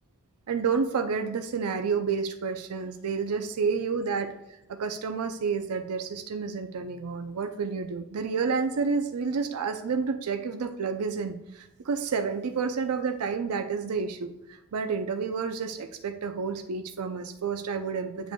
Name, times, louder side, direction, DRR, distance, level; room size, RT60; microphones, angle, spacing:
voice 1, 0.5-4.3 4.7-14.3 14.7-18.3, right 5 dB, 90° right, 7 dB, 0.5 m, -30 dB
8.9 x 5.1 x 2.2 m, 0.90 s
head